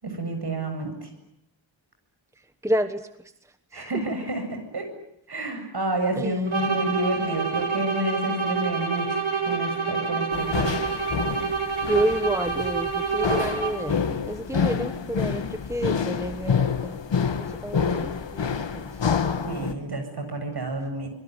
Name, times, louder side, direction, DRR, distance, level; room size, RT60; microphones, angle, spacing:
voice 1, 0.0-1.1 3.7-4.9 5.3-9.2 9.4-10.7 19.5-21.1, right 1 dB, 55° right, 7 dB, 7.9 m, -29 dB
voice 2, 2.6-3.1 3.7-3.9 6.1-6.6 11.8-19.0, right 1 dB, 5° right, 10 dB, 1.2 m, -29 dB
sound 1, 6.5-14.0, right 5 dB, 80° right, 4.9 m, -28 dB
sound 2, 10.3-19.7, left 6 dB, 65° left, 2.1 m, -28 dB
26.0 x 22.5 x 9.7 m, 0.75 s
wide cardioid pair, 115°, 47 cm